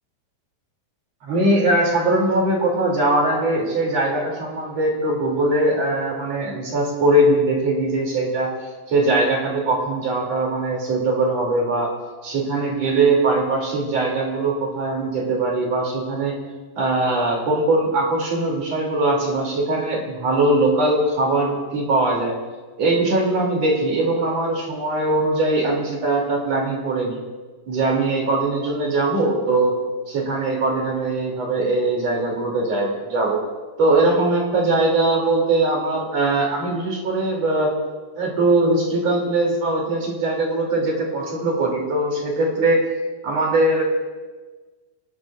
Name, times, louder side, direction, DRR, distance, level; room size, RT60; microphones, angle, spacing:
voice 1, 1.2-11.9 12.2-16.3 16.8-22.3 22.8-27.2 27.7-29.8 30.1-33.4 33.8-37.7 38.2-42.9 43.2-43.8, right 2 dB, 40° right, -1 dB, 3.4 m, -21 dB
25.0 x 19.5 x 2.5 m, 1.3 s
omnidirectional pair, 5.3 m